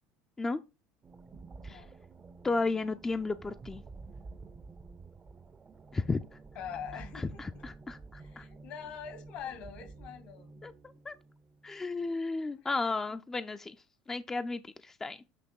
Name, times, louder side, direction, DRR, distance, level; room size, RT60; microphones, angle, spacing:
Water Filling Machine Eerie, 1.0-12.1, right 3 dB, 30° right, 0.6 m, -50 dB
voice 1, 2.4-3.8 5.9-6.2 7.1-8.4 10.6-10.7 11.0-11.1 11.6-13.8 14.1-15.2, left 3 dB, 20° left, 0.5 m, -33 dB
voice 2, 6.5-7.6 8.1-10.5 12.6-12.8, left 8 dB, 60° left, 1.4 m, -44 dB
8.4 x 3.0 x 5.4 m
hypercardioid pair, 80°, 2 cm